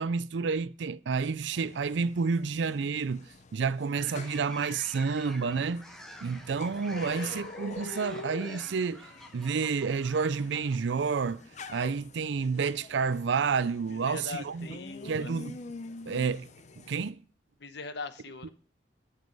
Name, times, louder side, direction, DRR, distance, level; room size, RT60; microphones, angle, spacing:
voice 1, 0.0-5.8 6.2-9.1 9.3-11.4 11.7-14.7 15.0-15.6 16.1-16.5 16.8-17.2, right 5 dB, 75° right, 0.4 m, -30 dB
sound 1, 1.5-17.1, left 3 dB, 40° left, 0.8 m, -47 dB
sound 2, 3.9-10.8, equal, ahead, 1.4 m, -48 dB
voice 2, 7.0-7.4 13.9-15.3 17.6-18.5, left 3 dB, 65° left, 1.0 m, -41 dB
11.0 x 7.3 x 5.4 m
head